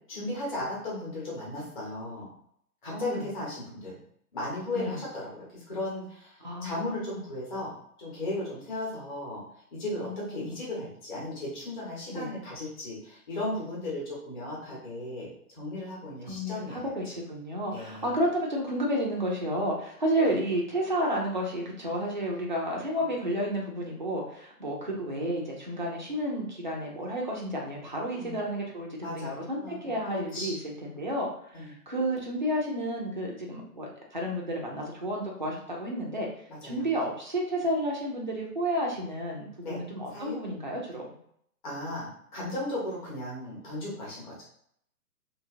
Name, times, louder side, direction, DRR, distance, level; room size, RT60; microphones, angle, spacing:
voice 1, 0.1-2.3 2.8-4.0 4.3-6.3 6.6-7.7 8.0-9.4 9.7-15.3 15.5-16.9 17.7-18.0 20.2-20.3 28.2-28.3 29.0-30.6 31.5-31.7 36.5-36.8 39.6-39.8 40.1-40.4 41.6-44.4, left 1 dB, 30° left, -6 dB, 1.2 m, -36 dB
voice 2, 2.9-3.3 4.7-5.0 6.4-7.2 10.0-10.6 12.1-12.3 16.2-36.3 36.6-41.1, equal, 35° right, -2 dB, 0.4 m, -31 dB
2.8 x 2.8 x 2.5 m, 0.69 s
hypercardioid pair, 150°, 47 cm